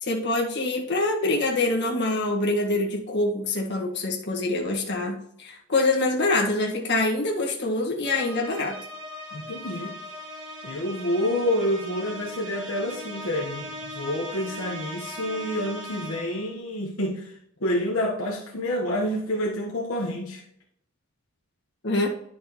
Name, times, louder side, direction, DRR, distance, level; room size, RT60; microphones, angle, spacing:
voice 1, 0.0-8.8 21.8-22.1, left 2 dB, 55° left, -1 dB, 1.7 m, -25 dB
sound 1, 8.0-16.6, left 1 dB, 80° right, 2.3 m, -39 dB
voice 2, 9.3-10.0 10.6-20.4, equal, 75° left, -2 dB, 1.3 m, -28 dB
10.5 x 6.1 x 3.1 m, 0.71 s
head